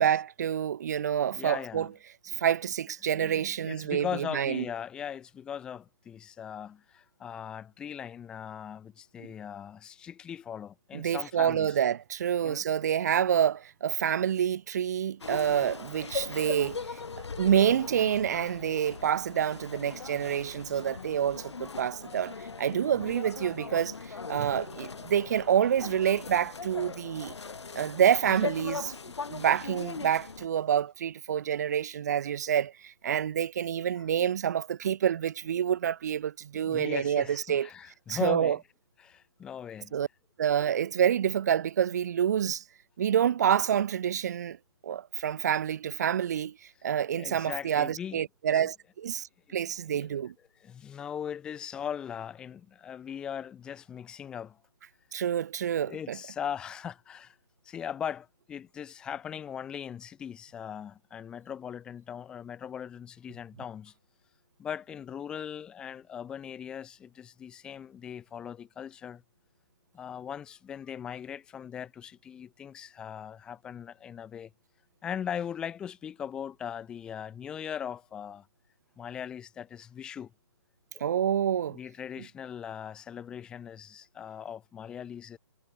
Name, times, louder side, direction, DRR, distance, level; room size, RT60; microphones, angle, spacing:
voice 1, 0.0-1.9 2.4-4.6 10.9-16.8 17.4-24.0 24.3-27.3 27.7-28.9 29.3-37.7 38.1-38.6 39.9-40.1 40.4-42.6 43.0-44.6 44.8-46.5 46.8-50.3 55.1-56.2 81.0-81.8, right 9 dB, 40° right, 0.8 m, -27 dB
voice 2, 1.3-1.9 2.3-2.4 3.1-11.8 12.4-12.6 36.6-38.6 39.0-40.0 47.1-48.2 48.5-48.6 49.5-49.6 49.9-50.1 50.6-54.6 55.8-57.4 57.7-63.9 64.6-69.2 69.9-74.5 75.0-78.5 79.0-80.3 80.9-81.2 81.7-85.4, left 8 dB, 5° left, 0.6 m, -39 dB
sound 1, 15.2-30.5, left 4 dB, 85° left, 3.9 m, -40 dB
hypercardioid pair, 165°, 14 cm